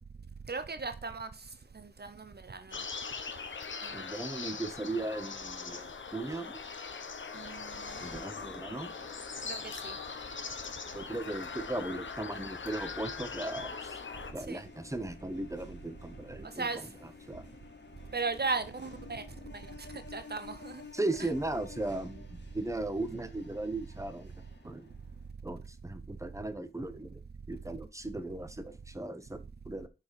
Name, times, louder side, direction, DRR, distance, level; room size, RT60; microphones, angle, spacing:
voice 1, 0.5-1.3 1.7-2.7 7.3-7.7 9.5-9.6 9.8-9.9 14.5-14.6 16.6-16.8 18.1-19.2 20.1-20.8, right 4 dB, 55° right, 0.7 m, -36 dB
sound 1, 2.7-14.3, left 5 dB, 85° left, 0.8 m, -41 dB
voice 2, 3.9-6.6 8.0-9.1 10.9-14.0 14.3-17.4 20.9-24.3 24.6-24.9 25.4-29.9, right 2 dB, 15° right, 1.0 m, -37 dB
sound 2, 7.9-25.3, left 4 dB, 65° left, 1.9 m, -52 dB
6.1 x 4.5 x 4.7 m
cardioid pair, 40°, 19 cm